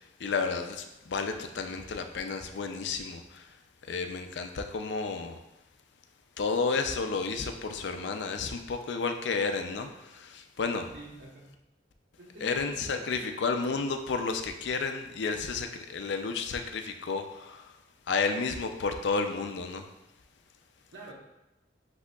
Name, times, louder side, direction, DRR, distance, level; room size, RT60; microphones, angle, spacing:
voice 1, 0.2-3.4 3.9-5.4 6.4-10.9 12.4-17.7 18.1-19.8, left 4 dB, 70° left, 6 dB, 0.4 m, -31 dB
voice 2, 10.9-11.5 12.2-13.2 20.9-21.1, right 1 dB, 65° right, -2 dB, 1.1 m, -46 dB
8.0 x 2.8 x 2.3 m, 0.93 s
head